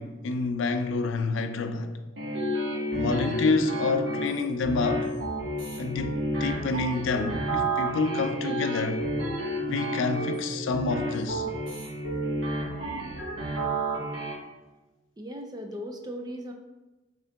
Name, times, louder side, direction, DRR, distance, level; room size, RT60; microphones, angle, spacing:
voice 1, 0.0-1.9 2.9-5.1 5.8-9.0 9.7-11.5, left 3 dB, 75° left, 0.4 m, -28 dB
sound 1, 2.2-14.3, right 1 dB, 65° right, 1.2 m, -30 dB
voice 2, 15.2-16.5, equal, 20° right, 0.4 m, -37 dB
6.3 x 3.7 x 2.3 m
head